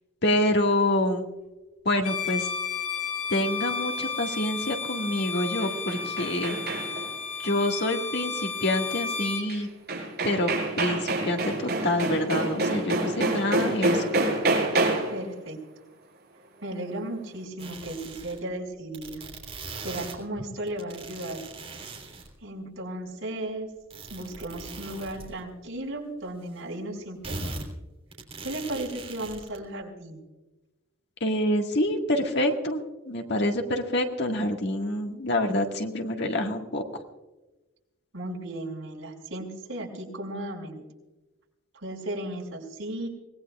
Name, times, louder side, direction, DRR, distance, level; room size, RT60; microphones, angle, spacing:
voice 1, 0.2-1.3 1.9-2.5 3.3-6.5 7.4-9.7 10.2-10.5 10.8-14.0 31.2-37.0, left 1 dB, 55° left, 2 dB, 1.8 m, -27 dB
Bowed string instrument, 2.0-9.5, left 5 dB, 35° left, 2.6 m, -33 dB
sound 1, 5.4-7.1 9.5-9.6 9.9-15.2, right 2 dB, 50° right, 6.0 m, -27 dB
voice 2, 15.1-15.6 16.6-19.2 19.8-21.4 22.4-23.7 24.1-27.6 28.4-30.2 38.1-40.8 41.7-43.1, right 1 dB, 75° right, -1 dB, 5.5 m, -35 dB
sound 2, 17.6-18.4 18.9-20.2 20.7-22.3 23.9-25.3 25.7-25.8 26.2-26.3 27.2-27.6 28.1-29.6, right 3 dB, 30° right, 3.5 m, -40 dB
25.0 x 19.5 x 2.4 m, 1.1 s
head